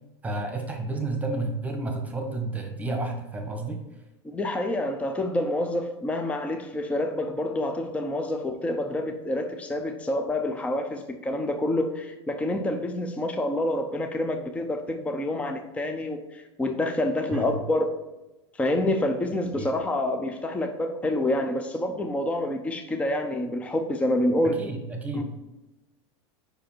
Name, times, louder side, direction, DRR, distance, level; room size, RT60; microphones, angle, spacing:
voice 1, 0.2-3.8 17.3-17.6 19.5-19.7 24.4-25.2, right 2 dB, 10° right, 3 dB, 1.1 m, -31 dB
voice 2, 4.2-17.9 18.6-24.6 25.1-25.2, left 1 dB, 10° left, 5 dB, 0.5 m, -27 dB
5.2 x 5.0 x 4.4 m, 1.0 s
supercardioid pair, 125°, 15 cm